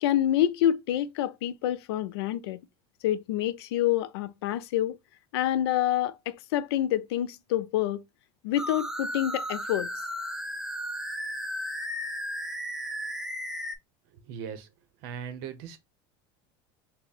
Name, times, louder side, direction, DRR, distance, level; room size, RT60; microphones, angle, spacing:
voice 1, 0.0-2.6 3.0-5.0 5.3-8.0 8.4-9.9, left 12 dB, 85° left, 0.4 m, -27 dB
sound 1, 8.6-13.7, equal, 5° right, 0.4 m, -34 dB
voice 2, 14.1-14.7 15.0-15.8, right 7 dB, 70° right, 0.7 m, -39 dB
3.4 x 2.0 x 3.9 m
supercardioid pair, 125°, 13 cm